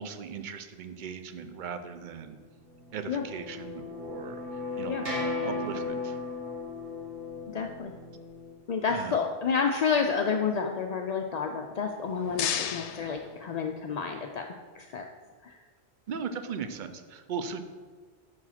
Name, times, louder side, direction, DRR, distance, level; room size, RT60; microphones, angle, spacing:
voice 1, 0.0-2.4 2.9-4.4 4.8-6.2 8.9-9.2 16.1-17.6, right 6 dB, 55° right, 9 dB, 0.6 m, -38 dB
sound 1, 2.8-8.5, left 3 dB, 85° right, 1.8 m, -36 dB
voice 2, 7.5-7.9 8.7-15.0 15.4-15.6, left 6 dB, 60° left, 3 dB, 0.4 m, -30 dB
sound 2, 11.9-14.1, left 9 dB, 80° left, 0.9 m, -35 dB
6.2 x 4.8 x 5.7 m, 1.5 s
omnidirectional pair, 1.2 m